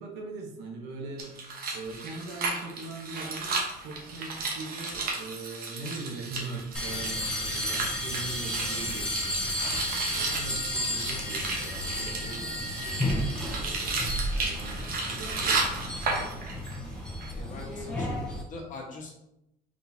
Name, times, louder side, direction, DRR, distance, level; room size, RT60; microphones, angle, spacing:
voice 1, 0.0-1.4 1.7-16.5, right 3 dB, 85° right, 1 dB, 1.0 m, -41 dB
sound 1, 1.2-16.8 17.0-17.3, right 3 dB, 60° right, 1.0 m, -34 dB
sound 2, 6.7-18.4, equal, 5° left, 1.0 m, -32 dB
voice 2, 17.3-19.1, left 3 dB, 50° left, -1 dB, 1.3 m, -43 dB
4.3 x 3.6 x 2.7 m, 0.84 s
cardioid pair, 110°, 17 cm